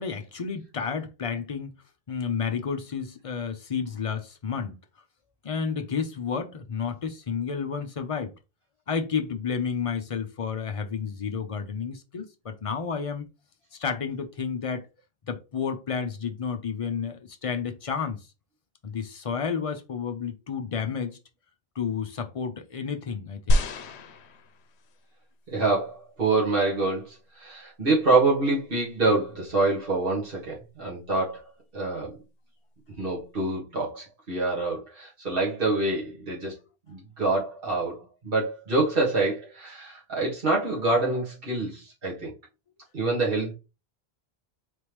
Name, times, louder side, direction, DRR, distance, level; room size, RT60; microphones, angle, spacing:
voice 1, 0.0-1.7 2.1-4.8 5.4-8.3 8.9-13.3 13.8-14.9 15.3-18.2 18.8-21.2 21.8-23.7, left 6 dB, 40° left, 0.5 m, -31 dB
sound 1, 23.5-25.0 25.8-25.9, left 1 dB, 85° left, 0.9 m, -26 dB
voice 2, 25.5-31.4 31.7-32.2 32.9-36.6 36.9-42.3 42.9-43.5, right 3 dB, 60° right, 1.8 m, -26 dB
4.2 x 3.4 x 3.0 m
omnidirectional pair, 1.1 m